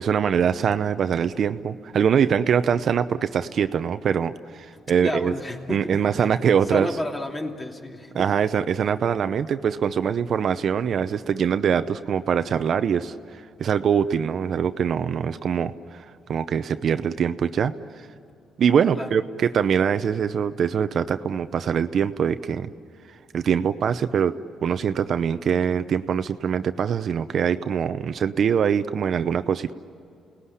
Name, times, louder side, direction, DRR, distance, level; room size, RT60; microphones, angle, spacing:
voice 1, 0.0-5.3 5.7-6.9 8.1-17.7 18.6-22.7 23.3-29.7, right 7 dB, 55° right, 11 dB, 0.7 m, -23 dB
voice 2, 4.7-6.3 6.7-8.3 18.9-19.1, left 1 dB, 25° left, 2 dB, 2.9 m, -31 dB
29.0 x 19.0 x 10.0 m, 2.4 s
cardioid pair, 95°, 0 cm